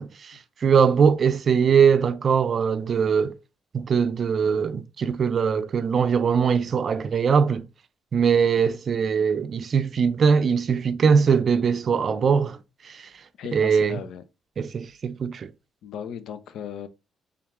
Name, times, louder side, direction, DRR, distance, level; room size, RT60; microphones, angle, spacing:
voice 1, 0.0-3.4 3.7-7.6 8.1-12.6 12.8-13.1 13.5-14.0 14.6-15.5, right 6 dB, 50° right, 0.4 m, -21 dB
voice 2, 13.4-14.2 15.8-16.9, left 8 dB, 75° left, 0.5 m, -36 dB
3.5 x 3.5 x 3.0 m
cardioid pair, 90°, 0 cm